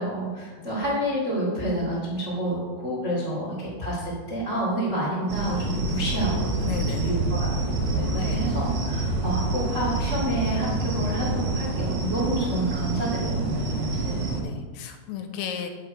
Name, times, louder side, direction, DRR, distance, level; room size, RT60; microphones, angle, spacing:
voice 1, 0.0-6.5 6.9-14.3, right 1 dB, 80° right, -7 dB, 0.6 m, -29 dB
sound 1, 5.3-14.4, right 2 dB, 65° right, 2.9 m, -27 dB
voice 2, 6.6-7.1 8.1-8.4 13.9-14.1 14.4-15.7, left 8 dB, 80° left, 5 dB, 3.3 m, -34 dB
8.7 x 7.5 x 4.8 m, 1.4 s
omnidirectional pair, 5.9 m